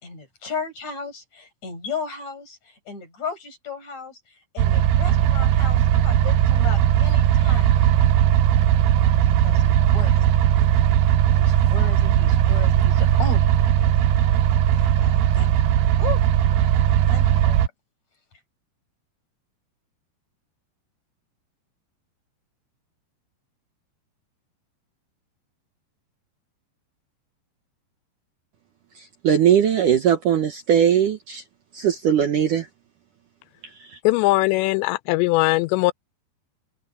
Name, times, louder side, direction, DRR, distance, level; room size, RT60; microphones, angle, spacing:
voice 1, 0.0-7.7 9.3-10.2 11.3-14.1 14.7-17.6, left 5 dB, 40° left, 7.0 m, -35 dB
sound 1, 4.6-17.7, right 11 dB, 80° right, 2.0 m, -18 dB
voice 2, 29.2-31.4 31.7-32.7, right 9 dB, 65° right, 2.2 m, -19 dB
voice 3, 34.0-35.9, left 22 dB, 85° left, 2.8 m, -20 dB
omnidirectional pair, 5.0 m